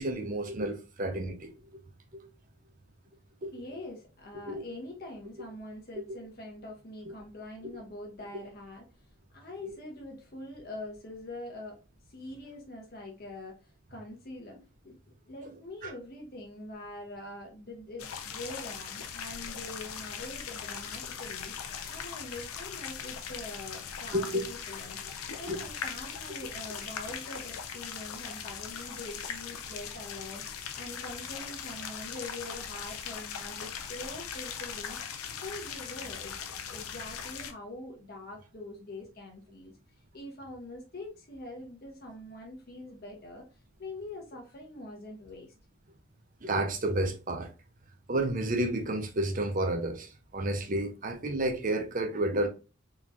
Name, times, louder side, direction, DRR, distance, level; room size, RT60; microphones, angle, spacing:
voice 1, 0.0-1.5 3.4-3.5 4.5-4.6 7.1-7.2 15.8-15.9 24.1-24.5 25.4-25.6 46.4-47.5 48.1-52.5, right 1 dB, 35° right, 0.6 m, -31 dB
voice 2, 3.5-8.9 9.3-11.8 12.1-14.6 14.8-36.4 36.7-39.8 40.1-43.4 43.8-45.5, left 1 dB, 45° left, 0.8 m, -44 dB
sound 1, 18.0-37.5, left 7 dB, 80° left, 0.5 m, -40 dB
3.8 x 2.9 x 2.5 m
head